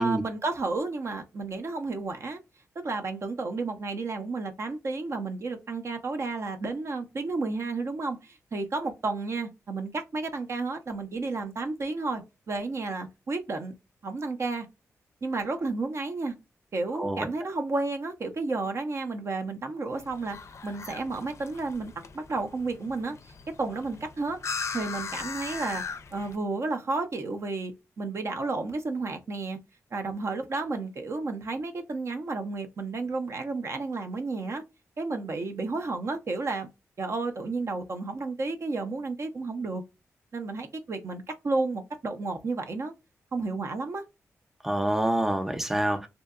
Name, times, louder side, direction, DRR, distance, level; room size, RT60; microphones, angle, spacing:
voice 1, 0.0-2.4 2.8-13.7 14.0-14.7 15.2-16.3 16.7-20.4 20.6-23.2 23.6-24.4 24.7-25.8 26.1-29.6 29.9-34.6 35.0-36.7 37.0-39.8 40.3-42.9 43.3-44.0, right 3 dB, 55° right, 0.5 m, -32 dB
voice 2, 16.9-17.3 44.6-46.1, right 1 dB, 5° right, 0.5 m, -26 dB
sound 1, 19.9-26.3, left 5 dB, 55° left, 0.4 m, -39 dB
2.7 x 2.2 x 2.3 m
cardioid pair, 65°, 6 cm